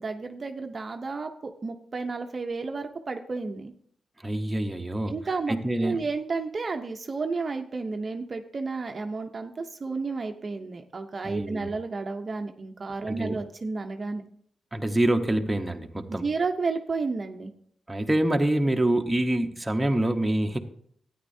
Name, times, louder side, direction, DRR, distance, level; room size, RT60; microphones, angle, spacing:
voice 1, 0.0-3.7 5.1-14.2 16.1-17.5, right 4 dB, 40° right, 5 dB, 0.6 m, -32 dB
voice 2, 4.2-5.1 5.5-6.0 11.2-11.7 13.1-13.4 14.7-16.2 17.9-20.6, right 1 dB, 10° right, 4 dB, 0.8 m, -26 dB
13.5 x 9.3 x 2.7 m, 0.65 s
wide cardioid pair, 110°, 0 cm